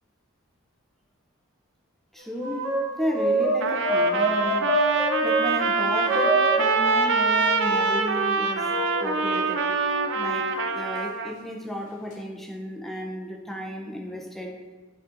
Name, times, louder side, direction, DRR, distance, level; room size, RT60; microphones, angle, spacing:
voice 1, 2.1-4.8 5.2-8.8 9.0-9.7 10.1-14.6, equal, ahead, 0 dB, 0.6 m, -33 dB
sound 1, 2.2-5.5 6.0-8.0 8.7-10.6, right 1 dB, 80° left, 1.9 m, -27 dB
Trumpet, 3.6-11.3, right 4 dB, 60° right, 0.5 m, -25 dB
11.5 x 4.2 x 2.5 m, 1.4 s
head